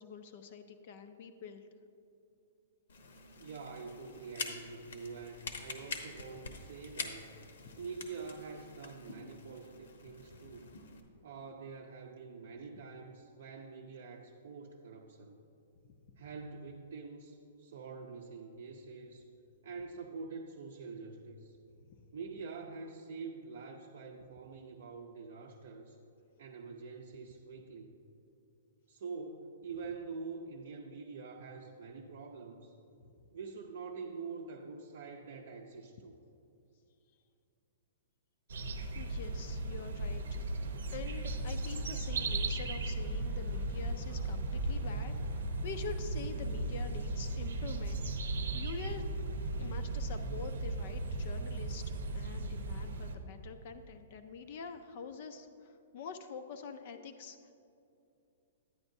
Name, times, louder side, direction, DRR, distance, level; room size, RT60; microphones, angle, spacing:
voice 1, 0.0-1.6 7.6-7.8 10.4-10.5 22.0-22.1 38.9-40.4 40.9-49.1 49.6-57.4, left 6 dB, 40° left, 8 dB, 0.4 m, -46 dB
sound 1, 2.9-11.0, left 4 dB, 75° left, 1.0 m, -46 dB
voice 2, 3.4-7.4 7.8-10.7 11.2-15.4 16.2-19.3 19.6-21.6 22.1-26.0 26.4-28.0 28.9-32.7 33.3-36.1, right 4 dB, 55° right, 0 dB, 0.5 m, -46 dB
sound 2, 38.5-53.2, right 2 dB, 85° right, 0.7 m, -36 dB
sound 3, 40.1-46.0, equal, ahead, 0.6 m, -60 dB
10.5 x 9.5 x 2.6 m, 2.7 s
hypercardioid pair, 175°, 0 cm